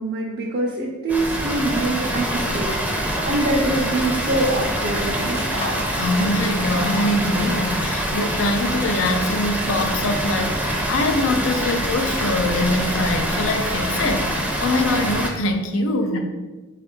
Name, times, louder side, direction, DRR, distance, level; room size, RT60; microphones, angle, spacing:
voice 1, 0.0-5.7 16.1-16.2, right 2 dB, 50° right, -3 dB, 0.6 m, -24 dB
Water, 1.1-15.3, equal, 10° right, 0.6 m, -25 dB
sound 1, 5.0-8.8, left 1 dB, 30° left, 0.7 m, -39 dB
voice 2, 6.0-14.3 14.6-16.2, left 2 dB, 70° left, 5 dB, 0.5 m, -23 dB
4.3 x 2.5 x 4.3 m, 1.2 s
head